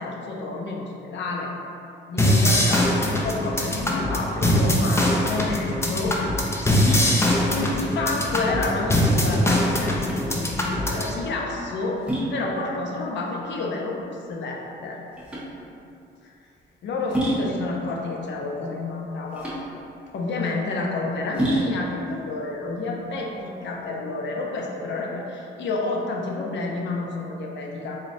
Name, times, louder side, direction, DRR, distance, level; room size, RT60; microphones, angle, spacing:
voice 1, 0.0-1.5 2.1-6.5 7.3-12.0 12.3-15.0 16.2-16.3 16.8-19.5 20.1-28.0, left 3 dB, 65° left, -1 dB, 0.6 m, -30 dB
sound 1, 2.2-11.1, left 1 dB, 15° left, 0.5 m, -22 dB
sound 2, 6.7-23.8, right 1 dB, 5° right, 1.1 m, -32 dB
3.9 x 3.2 x 2.6 m, 2.7 s
cardioid pair, 90°, 20 cm